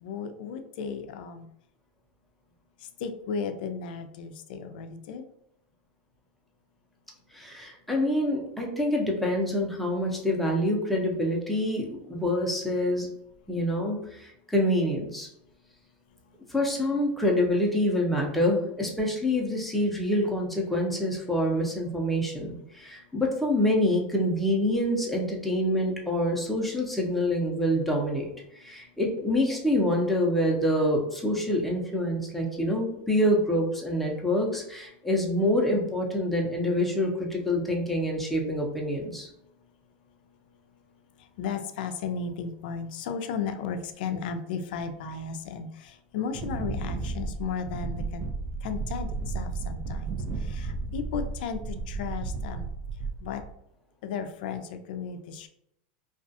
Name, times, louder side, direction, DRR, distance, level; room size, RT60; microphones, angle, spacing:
voice 1, 0.0-1.5 3.0-5.2 41.4-48.2 48.6-50.1 50.4-51.6 51.9-52.7 53.2-53.4 54.0-55.5, left 6 dB, 75° left, 8 dB, 0.4 m, -34 dB
voice 2, 7.3-13.1 13.5-15.3 16.5-39.3, left 1 dB, ahead, -1 dB, 0.7 m, -26 dB
Wind, 46.3-53.5, right 3 dB, 45° right, 0.5 m, -33 dB
2.3 x 2.3 x 2.6 m, 0.78 s
supercardioid pair, 115°, 5 cm